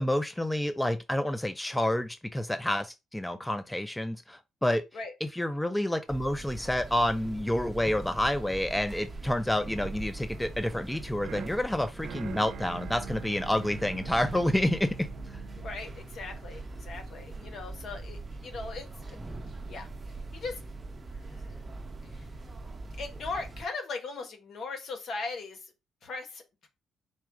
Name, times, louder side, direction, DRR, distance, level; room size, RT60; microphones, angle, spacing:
voice 1, 0.0-4.8 5.2-15.1, left 1 dB, 10° left, 0.4 m, -29 dB
sound 1, 6.1-23.7, right 2 dB, 30° right, 0.8 m, -42 dB
sound 2, 10.8-17.0, right 7 dB, 70° right, 0.7 m, -44 dB
voice 2, 15.6-19.2 19.7-19.9 20.3-20.6 21.1-21.4 22.0-22.3 23.0-25.7 26.0-26.7, left 3 dB, 60° left, 1.2 m, -39 dB
4.2 x 2.3 x 4.7 m
cardioid pair, 90°, 0 cm